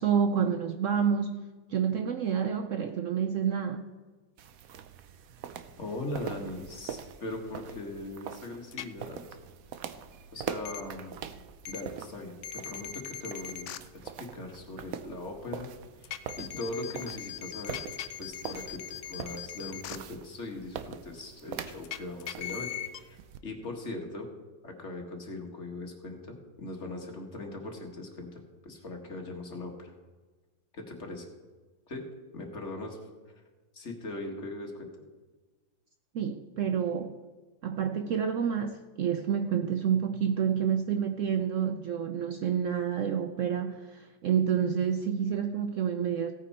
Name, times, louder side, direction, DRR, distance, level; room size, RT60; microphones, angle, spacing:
voice 1, 0.0-1.5 1.7-3.8 36.1-37.1 37.6-46.3, right 7 dB, 90° right, 0.6 m, -28 dB
sound 1, 4.4-23.4, right 8 dB, 65° right, 0.9 m, -44 dB
voice 2, 5.8-9.2 10.3-11.2 11.7-13.8 14.0-15.7 16.0-17.8 18.2-24.3 24.6-29.9 30.7-31.3 31.9-32.0 32.3-33.0 33.7-34.9, left 2 dB, 40° left, 1.8 m, -40 dB
sound 2, 8.7-8.9 10.7-10.8 11.7-11.8 12.4-13.8 16.0-20.0 21.8-23.0, left 11 dB, 85° left, 0.6 m, -39 dB
16.5 x 9.2 x 4.3 m
omnidirectional pair, 2.0 m